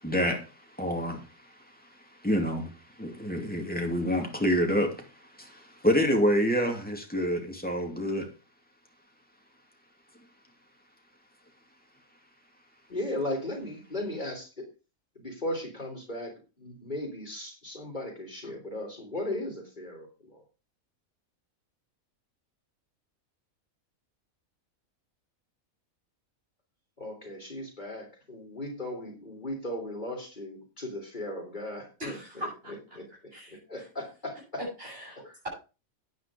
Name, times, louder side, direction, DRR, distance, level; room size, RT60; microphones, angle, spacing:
voice 1, 0.0-0.5 0.8-1.3 2.2-5.1 5.3-8.3, equal, 5° left, 2 dB, 2.4 m, -27 dB
voice 2, 12.9-14.7 15.2-20.4 27.0-32.2 32.9-33.0 33.5-34.4 35.3-35.4, left 1 dB, 30° left, 0 dB, 3.5 m, -37 dB
voice 3, 32.0-33.9 34.6-35.5, equal, 40° right, -5 dB, 8.2 m, -40 dB
9.9 x 9.4 x 5.0 m, 0.32 s
omnidirectional pair, 1.5 m